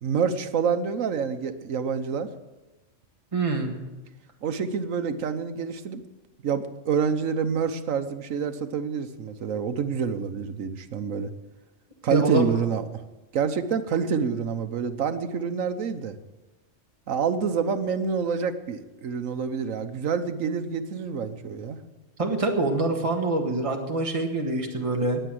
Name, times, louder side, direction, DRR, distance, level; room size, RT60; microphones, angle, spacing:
voice 1, 0.0-2.3 4.4-6.0 6.4-11.3 12.0-13.0 13.3-16.1 17.1-21.8, right 6 dB, 85° right, 10 dB, 1.4 m, -27 dB
voice 2, 3.3-3.8 12.1-12.6 22.2-25.2, right 2 dB, 25° right, 2 dB, 1.7 m, -25 dB
19.5 x 7.9 x 7.7 m, 1.1 s
omnidirectional pair, 1.3 m